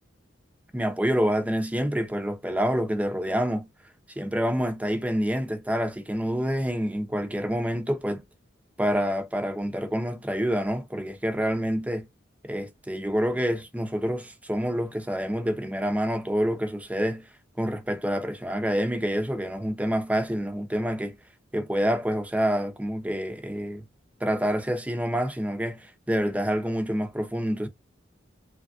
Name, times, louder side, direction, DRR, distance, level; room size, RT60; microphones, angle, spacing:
voice 1, 0.7-3.7 4.2-8.2 8.8-12.1 12.4-17.3 17.6-21.1 21.5-23.8 24.2-27.7, equal, 10° right, 0.6 m, -27 dB
3.2 x 2.3 x 2.5 m
head